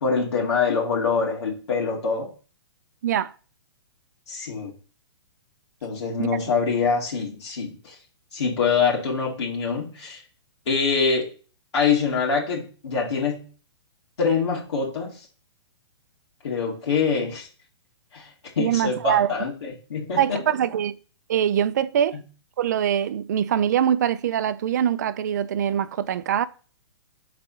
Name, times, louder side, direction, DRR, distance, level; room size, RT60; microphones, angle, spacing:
voice 1, 0.0-2.3 4.3-4.7 5.8-7.9 8.3-10.2 10.7-11.3 11.7-13.4 14.2-15.1 16.4-17.5 18.1-18.3 18.6-20.4, left 5 dB, 85° left, 2.5 m, -24 dB
voice 2, 18.6-19.3 20.2-21.0 21.3-22.2 22.6-26.5, right 10 dB, 40° right, 0.4 m, -23 dB
4.5 x 4.2 x 5.6 m
hypercardioid pair, 175°, 14 cm